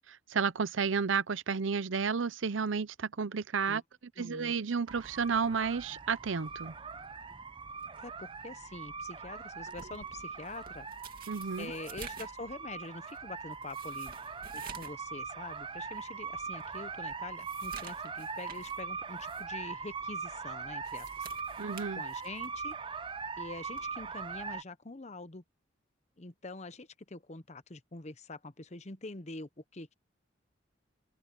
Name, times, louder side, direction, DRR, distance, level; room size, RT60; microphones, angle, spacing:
voice 1, 0.1-3.8 4.2-6.7 11.3-11.7 21.6-22.0, right 5 dB, 85° right, 0.7 m, -32 dB
voice 2, 4.2-4.5 8.0-10.9 11.6-14.2 14.5-21.3 22.0-22.7 23.4-25.4 26.2-29.9, left 2 dB, 35° left, 0.9 m, -45 dB
sound 1, 4.9-24.6, right 5 dB, 25° right, 0.7 m, -41 dB
sound 2, 9.6-15.0 15.4-15.5 16.1-16.2 16.6-18.8 19.2-19.4 20.7-22.6 23.7-23.9, right 6 dB, 50° right, 2.8 m, -50 dB
open air
head